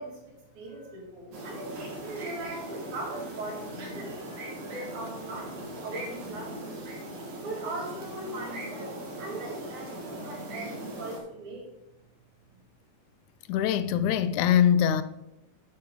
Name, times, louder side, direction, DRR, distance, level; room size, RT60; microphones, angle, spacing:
voice 1, 0.0-6.7 7.4-11.7, right 2 dB, 80° right, 3.8 m, -40 dB
sound 1, 1.3-11.2, right 1 dB, 65° right, 2.8 m, -39 dB
voice 2, 13.5-15.0, left 9 dB, 85° left, 2.0 m, -23 dB
7.6 x 7.0 x 5.1 m
omnidirectional pair, 3.4 m